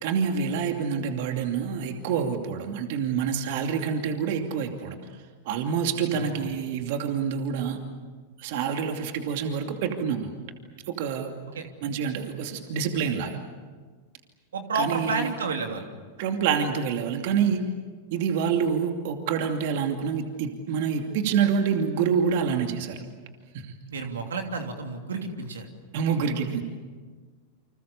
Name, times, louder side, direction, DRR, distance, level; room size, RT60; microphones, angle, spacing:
voice 1, 0.0-5.0 5.5-7.8 8.4-10.3 10.9-11.3 11.8-13.4 14.7-15.3 16.2-17.7 18.1-23.0 23.5-23.8 25.9-26.6, right 6 dB, 60° right, 4 dB, 2.6 m, -27 dB
voice 2, 6.1-6.5 11.5-11.7 14.5-15.9 23.9-25.7, right 4 dB, 85° right, 4 dB, 2.9 m, -31 dB
29.0 x 26.0 x 7.0 m, 1.5 s
hypercardioid pair, 105°, 0 cm